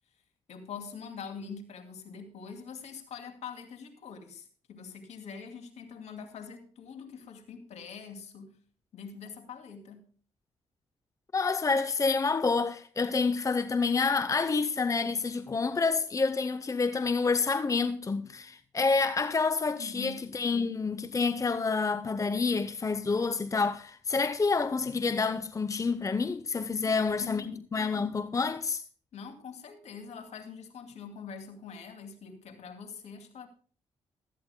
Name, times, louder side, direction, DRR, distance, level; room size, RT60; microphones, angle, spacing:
voice 1, 0.5-8.6 8.9-10.1 19.8-20.3 26.8-27.6 29.1-33.5, left 6 dB, 70° left, 2.5 m, -44 dB
voice 2, 11.3-28.8, left 4 dB, 25° left, 0.8 m, -28 dB
17.0 x 13.5 x 2.2 m
cardioid pair, 65°, 12 cm